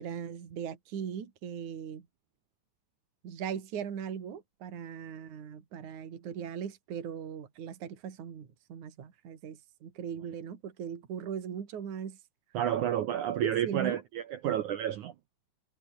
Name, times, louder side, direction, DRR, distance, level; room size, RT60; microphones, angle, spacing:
voice 1, 0.0-2.1 3.2-12.2 13.4-14.0, right 8 dB, 45° right, 4.0 m, -39 dB
voice 2, 12.5-15.1, right 10 dB, 80° right, 1.7 m, -30 dB
omnidirectional pair, 4.9 m